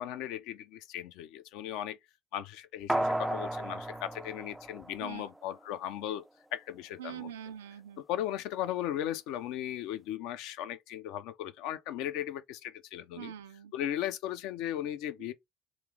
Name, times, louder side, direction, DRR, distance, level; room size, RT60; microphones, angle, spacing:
voice 1, 0.0-2.0 2.3-6.2 6.5-7.3 8.0-13.3 13.7-15.3, left 11 dB, 65° left, 0.4 m, -37 dB
sound 1, 2.9-5.5 5.8-5.9, right 1 dB, 10° right, 0.3 m, -34 dB
voice 2, 7.0-8.0 13.2-13.7 15.2-15.3, right 10 dB, 75° right, 0.4 m, -44 dB
3.1 x 3.0 x 3.7 m
figure-of-eight pair, 60°, 0 cm